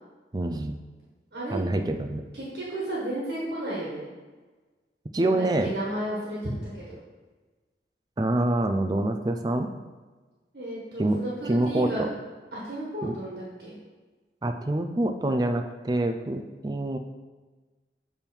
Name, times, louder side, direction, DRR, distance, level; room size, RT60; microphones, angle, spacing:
voice 1, 0.3-0.8 1.5-2.2 5.1-5.7 8.2-9.7 11.0-12.1 13.0-13.2 14.4-17.0, right 1 dB, 20° right, 6 dB, 0.3 m, -26 dB
voice 2, 2.3-4.1 5.2-7.0 10.5-12.0 12.5-13.7, right 1 dB, 60° right, -7 dB, 1.6 m, -33 dB
7.1 x 3.5 x 4.5 m, 1.3 s
head